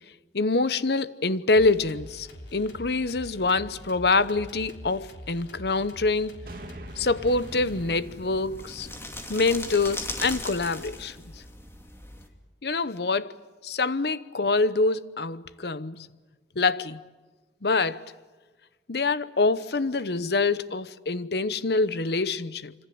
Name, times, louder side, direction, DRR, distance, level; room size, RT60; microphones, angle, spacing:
voice 1, 0.3-6.4 7.0-8.9 9.3-11.2 12.6-16.1 16.6-17.0 17.6-18.1 18.9-22.7, left 3 dB, 65° left, 0.9 m, -25 dB
sound 1, 1.5-8.2, left 1 dB, 90° left, 3.6 m, -45 dB
sound 2, 6.5-10.9, right 1 dB, 55° right, 2.7 m, -45 dB
sound 3, 7.3-12.3, left 2 dB, 15° left, 2.6 m, -39 dB
26.0 x 25.5 x 8.7 m
head